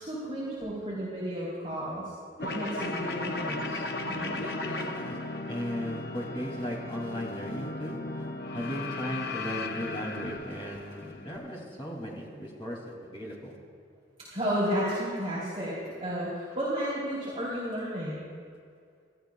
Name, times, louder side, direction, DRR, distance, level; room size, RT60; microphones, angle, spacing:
voice 1, 0.0-2.1 2.4-4.4 14.3-18.3, equal, 35° right, -9 dB, 3.3 m, -33 dB
sound 1, 2.4-11.4, left 2 dB, 55° left, 0.8 m, -36 dB
voice 2, 4.4-5.2 5.5-8.3 8.5-12.8 13.1-13.6, equal, 30° left, -3 dB, 2.9 m, -36 dB
28.0 x 13.0 x 2.4 m, 2.2 s
head